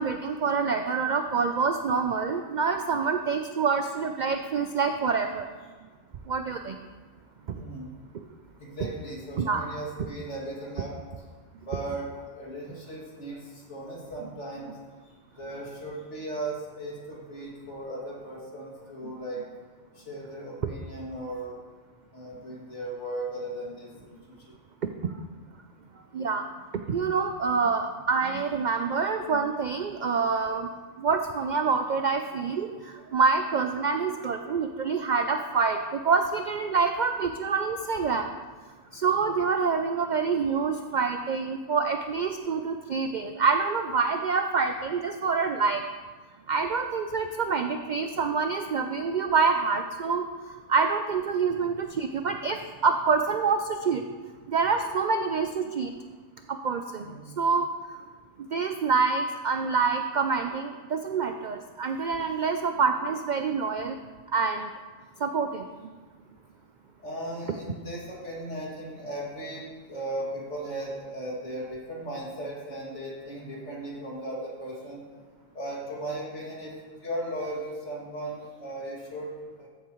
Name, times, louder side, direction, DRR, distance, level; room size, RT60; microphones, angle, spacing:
voice 1, 0.0-5.5 6.3-6.8 8.8-8.9 9.4-9.6 19.0-19.1 25.0-25.1 26.1-26.5 26.9-30.7 31.0-38.3 38.9-45.8 46.5-50.2 50.7-54.0 54.5-55.9 56.5-57.1 57.4-57.7 58.5-64.0 64.3-64.7 65.2-65.6, right 5 dB, 75° right, 6 dB, 0.4 m, -26 dB
voice 2, 7.5-7.9 8.6-11.0 11.7-12.1 12.3-13.4 13.7-14.7 15.4-19.4 20.0-21.5 22.1-24.4 57.0-57.3 67.0-75.0 75.5-76.7 77.0-79.7, right 1 dB, 60° left, -4 dB, 2.6 m, -37 dB
14.0 x 8.4 x 3.0 m, 1.4 s
omnidirectional pair, 1.3 m